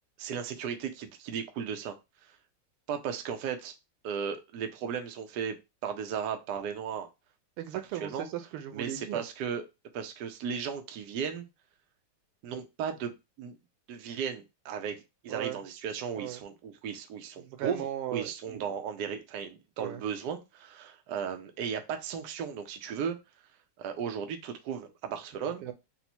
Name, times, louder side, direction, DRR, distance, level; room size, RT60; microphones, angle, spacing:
voice 1, 0.2-1.9 2.9-3.7 4.0-5.6 5.8-7.1 8.0-8.3 8.7-9.6 9.9-11.4 12.4-13.6 13.9-15.0 15.2-23.2 23.8-25.7, right 7 dB, 70° right, 1.0 m, -35 dB
voice 2, 7.6-9.2 15.3-15.6 16.2-16.4 17.4-18.6 19.8-20.0 25.6-25.7, right 11 dB, 90° right, 1.6 m, -37 dB
4.1 x 2.1 x 4.3 m
omnidirectional pair, 2.3 m